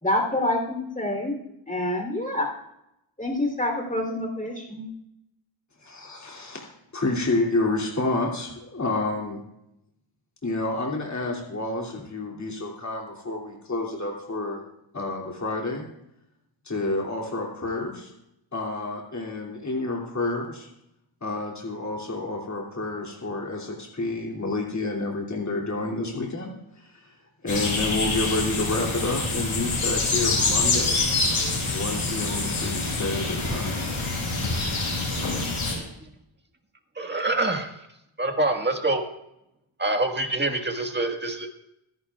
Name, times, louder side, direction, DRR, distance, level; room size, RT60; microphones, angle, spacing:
voice 1, 0.0-1.3 1.7-2.5 3.2-4.9, left 1 dB, 15° left, 2 dB, 3.3 m, -27 dB
voice 2, 5.8-9.4 10.4-14.6 14.9-15.8 16.6-18.1 18.5-20.7 21.2-27.1 27.4-31.1 31.7-33.8, left 2 dB, 35° left, -2 dB, 2.8 m, -29 dB
sound 1, 27.5-35.7, left 3 dB, 90° left, 6.1 m, -26 dB
voice 3, 37.0-37.7 38.2-39.0 39.8-41.5, right 2 dB, 20° right, 4 dB, 1.6 m, -25 dB
25.5 x 11.0 x 2.4 m, 0.83 s
wide cardioid pair, 95°, 49 cm